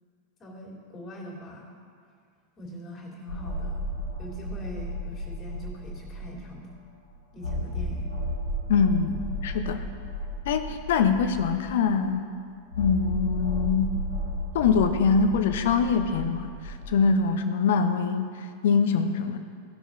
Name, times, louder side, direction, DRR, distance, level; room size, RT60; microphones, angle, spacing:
voice 1, 0.4-1.7 2.6-3.9 4.2-6.7 7.3-8.1, equal, 25° left, -2 dB, 2.8 m, -41 dB
sound 1, 3.3-6.5 6.9-7.0 7.4-11.9 12.7-17.0, equal, 85° right, 2.3 m, -33 dB
voice 2, 8.7-9.8 10.5-12.3 12.8-13.9 14.5-19.4, left 5 dB, 55° left, 9 dB, 0.7 m, -24 dB
16.5 x 6.2 x 4.0 m, 2.2 s
figure-of-eight pair, 90°, 0 cm